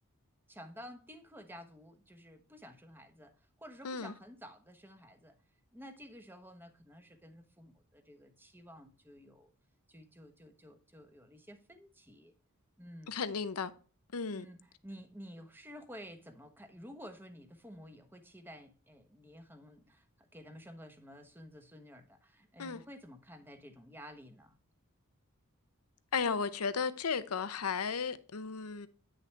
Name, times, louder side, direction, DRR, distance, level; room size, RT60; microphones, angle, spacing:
voice 1, 0.5-5.3 5.7-9.5 9.9-12.3 12.8-13.2 14.3-14.6 14.8-24.6, equal, 10° right, 1.1 m, -52 dB
voice 2, 13.1-13.7 14.1-14.5 22.6-22.8 26.1-28.9, left 5 dB, 80° left, 0.8 m, -34 dB
9.7 x 6.5 x 3.3 m
head